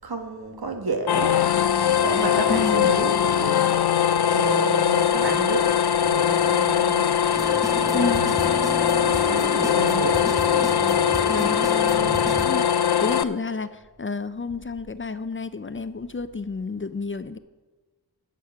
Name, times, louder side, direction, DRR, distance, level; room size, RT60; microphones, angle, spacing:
voice 1, 0.0-1.4 2.0-3.9 4.3-5.7 6.0-7.2 7.7-10.2 12.0-12.3, right 3 dB, 75° right, 5 dB, 1.7 m, -31 dB
sound 1, 1.1-13.2, left 9 dB, 75° left, 0.6 m, -21 dB
voice 2, 2.5-2.9 7.9-8.3 11.3-11.6 12.4-17.4, left 4 dB, 35° left, 12 dB, 0.5 m, -30 dB
sound 2, 7.3-12.5, right 1 dB, 10° right, 0.6 m, -33 dB
12.0 x 8.3 x 5.7 m, 1.3 s
wide cardioid pair, 95°, 38 cm